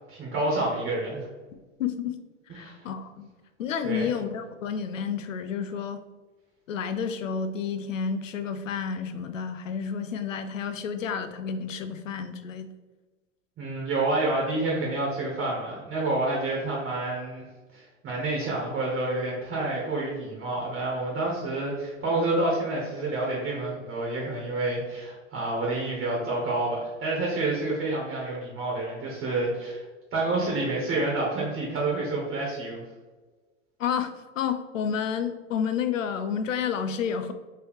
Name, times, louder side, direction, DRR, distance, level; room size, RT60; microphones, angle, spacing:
voice 1, 0.1-1.2 2.5-2.8 3.8-4.1 13.6-17.4 17.7-29.8 30.1-32.8, right 2 dB, 30° right, -3 dB, 1.1 m, -28 dB
voice 2, 1.8-2.2 2.5-3.3 3.6-6.0 6.7-12.7 33.8-37.3, left 7 dB, 90° left, 9 dB, 0.5 m, -30 dB
3.8 x 3.2 x 3.1 m, 1.2 s
hypercardioid pair, 100°, 38 cm